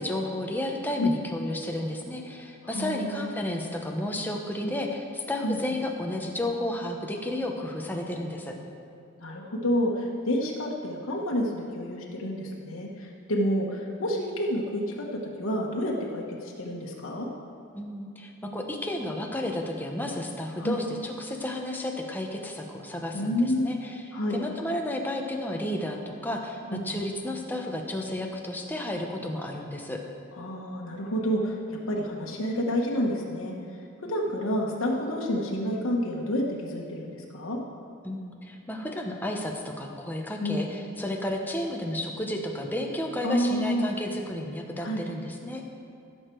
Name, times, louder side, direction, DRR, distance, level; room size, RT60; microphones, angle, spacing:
voice 1, 0.0-8.5 17.7-24.0 24.3-26.6 26.8-30.0 38.0-45.6, left 1 dB, 10° left, 1 dB, 1.0 m, -32 dB
voice 2, 2.6-3.3 4.6-4.7 5.4-5.6 9.2-15.1 15.4-17.3 20.6-20.8 23.1-23.7 24.1-24.4 26.7-27.0 30.4-31.6 31.9-33.5 34.0-37.6 40.4-40.6 43.2-43.8 44.8-45.0, equal, 80° left, -2 dB, 1.3 m, -29 dB
16.0 x 6.6 x 4.6 m, 2.5 s
head